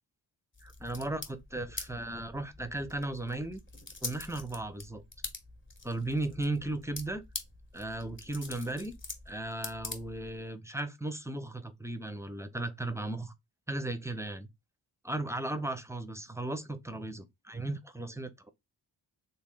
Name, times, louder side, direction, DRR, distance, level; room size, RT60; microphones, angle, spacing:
sound 1, 0.5-10.5, left 3 dB, 25° left, 1.1 m, -45 dB
voice 1, 0.6-3.6 4.0-5.0 5.8-7.2 7.7-8.9 9.3-13.3 13.7-14.5 15.0-18.5, right 2 dB, 5° right, 0.6 m, -36 dB
3.1 x 2.2 x 3.7 m
supercardioid pair, 40°, 46 cm